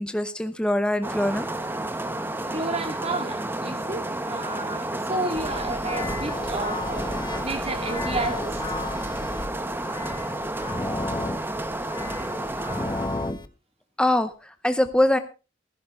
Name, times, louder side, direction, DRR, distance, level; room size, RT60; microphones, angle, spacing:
voice 1, 0.0-1.5 14.0-15.2, left 1 dB, 5° left, 0.7 m, -23 dB
sound 1, 1.0-13.3, right 1 dB, 10° right, 1.1 m, -31 dB
voice 2, 2.5-7.2 7.4-8.6, right 2 dB, 30° right, 2.3 m, -31 dB
sound 2, 5.3-13.5, left 2 dB, 20° left, 1.1 m, -33 dB
15.5 x 15.0 x 3.2 m
head